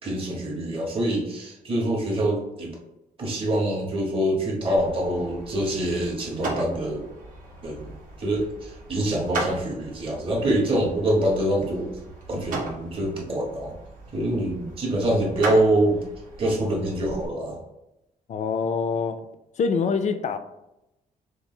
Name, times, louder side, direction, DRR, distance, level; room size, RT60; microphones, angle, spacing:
voice 1, 0.0-2.8 3.2-7.1 7.6-7.8 8.2-11.9 12.3-13.7 14.1-16.0 16.4-17.6, right 1 dB, 35° right, -2 dB, 1.5 m, -25 dB
sound 1, 4.7-17.2, right 2 dB, 65° right, 1.4 m, -37 dB
voice 2, 18.3-19.2 19.6-20.4, left 5 dB, 50° left, 9 dB, 0.5 m, -25 dB
5.9 x 2.1 x 4.4 m, 0.90 s
cardioid pair, 120°, 15 cm